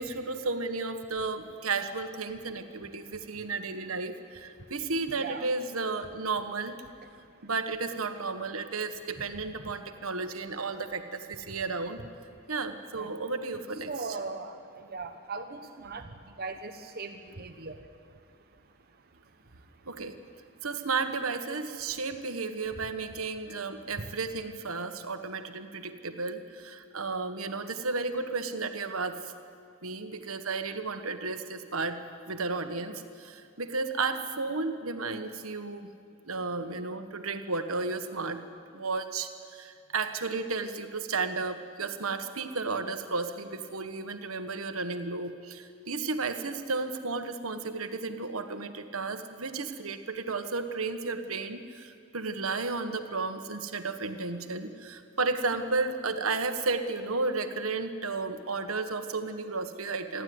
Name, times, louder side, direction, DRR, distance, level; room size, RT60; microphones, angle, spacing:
voice 1, 0.0-6.8 7.4-12.0 12.5-13.9 19.9-20.1 20.6-29.2 29.8-35.9 36.2-38.4 38.7-60.2, right 3 dB, 70° right, 8 dB, 1.5 m, -33 dB
voice 2, 5.2-5.5 12.9-13.1 13.8-16.1 16.4-17.7, right 4 dB, 45° right, 7 dB, 1.0 m, -39 dB
28.0 x 12.0 x 9.6 m, 2.3 s
head